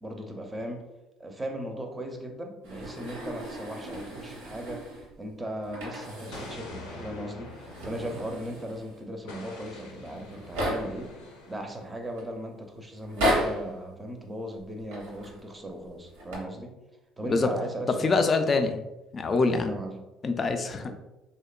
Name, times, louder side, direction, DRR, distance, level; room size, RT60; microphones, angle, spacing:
voice 1, 0.0-0.8 1.2-4.9 5.2-11.2 11.5-16.8 17.2-18.3 19.5-20.0 20.9-21.0, right 1 dB, 20° right, 4 dB, 0.5 m, -37 dB
sound 1, 2.6-5.1 5.6-6.7 6.9-7.0 7.5-9.0 9.8-9.9 10.1-11.1 11.7-12.2 13.0-13.7 14.8-15.4 16.1-16.4, equal, 85° right, 0.8 m, -33 dB
Explosion, 6.3-8.8 9.3-11.8, left 2 dB, 90° left, 0.5 m, -45 dB
voice 2, 18.0-18.8 19.1-19.7 20.2-20.9, left 3 dB, 40° left, 7 dB, 0.3 m, -24 dB
2.8 x 2.1 x 2.3 m, 0.98 s
hypercardioid pair, 70°, 0 cm